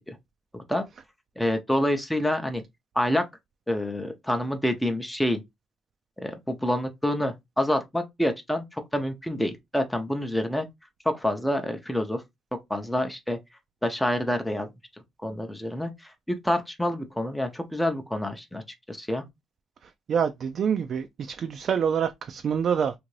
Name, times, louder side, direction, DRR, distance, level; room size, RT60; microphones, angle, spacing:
voice 1, 1.4-2.6 3.0-3.3 3.7-5.4 6.2-10.7 11.1-12.2 12.7-13.4 13.8-14.7 15.2-18.6 18.9-19.2, left 1 dB, 5° left, 0.5 m, -27 dB
voice 2, 19.8-22.9, right 7 dB, 60° right, 0.3 m, -26 dB
2.7 x 2.5 x 3.1 m
cardioid pair, 90°, 0 cm